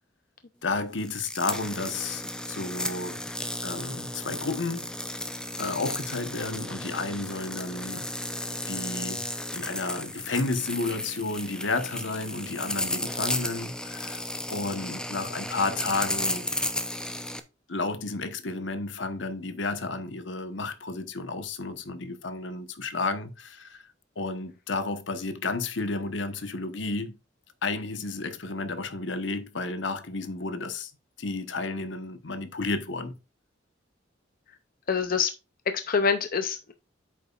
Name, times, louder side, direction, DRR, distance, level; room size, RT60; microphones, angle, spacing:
voice 1, 0.6-3.2 3.6-4.9 5.6-8.1 8.7-9.3 9.5-14.2 14.5-16.5 17.7-23.9 24.2-27.1 27.6-30.9 31.2-33.2, left 3 dB, 70° left, 1.1 m, -32 dB
sound 1, 1.0-17.4, left 1 dB, 5° left, 0.7 m, -34 dB
voice 2, 34.9-35.3 35.7-36.7, left 6 dB, 50° left, 0.6 m, -25 dB
8.5 x 7.0 x 2.4 m
head